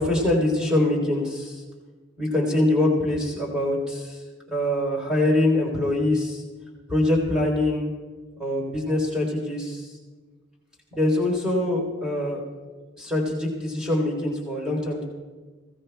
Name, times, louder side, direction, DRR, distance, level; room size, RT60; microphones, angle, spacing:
voice 1, 0.0-1.6 2.2-4.2 4.5-6.4 6.9-7.9 8.4-10.0 10.9-12.4 13.0-15.0, left 1 dB, 5° right, -3 dB, 3.3 m, -24 dB
21.5 x 16.5 x 2.3 m, 1.4 s
head